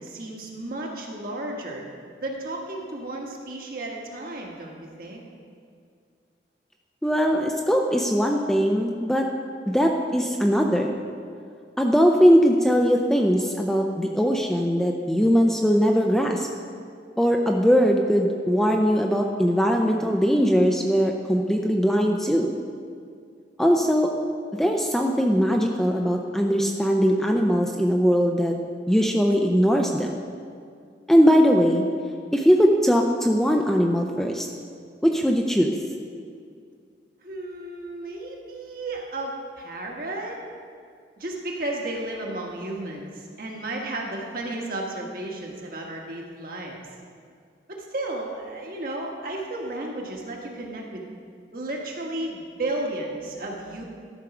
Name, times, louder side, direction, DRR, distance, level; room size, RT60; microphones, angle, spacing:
voice 1, 0.0-1.8 2.2-5.2 37.2-40.4 41.2-46.8 47.7-51.0 51.5-53.8, right 2 dB, 55° right, 0 dB, 1.4 m, -33 dB
voice 2, 7.0-9.3 9.7-10.9 11.8-16.5 17.2-22.5 23.6-24.1 24.6-28.6 28.9-30.1 31.1-31.8 32.3-34.5 35.0-35.7, equal, 5° left, 1 dB, 0.4 m, -20 dB
12.0 x 4.6 x 6.0 m, 2.3 s
head